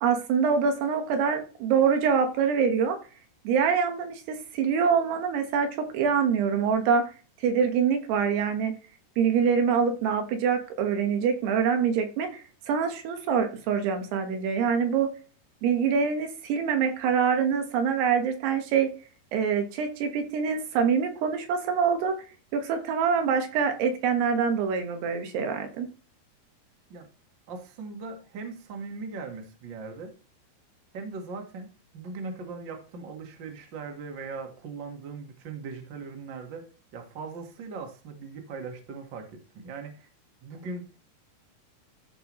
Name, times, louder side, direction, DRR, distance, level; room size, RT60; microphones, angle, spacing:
voice 1, 0.0-3.0 3.5-7.0 7.4-8.8 9.2-15.1 15.6-18.9 19.3-22.2 22.5-25.9, right 6 dB, 85° right, 5 dB, 3.5 m, -25 dB
voice 2, 27.5-30.1 30.9-31.7 31.9-36.6 36.9-40.1 40.4-41.0, right 4 dB, 50° right, 3 dB, 1.3 m, -39 dB
13.5 x 5.6 x 3.1 m, 0.36 s
omnidirectional pair, 4.6 m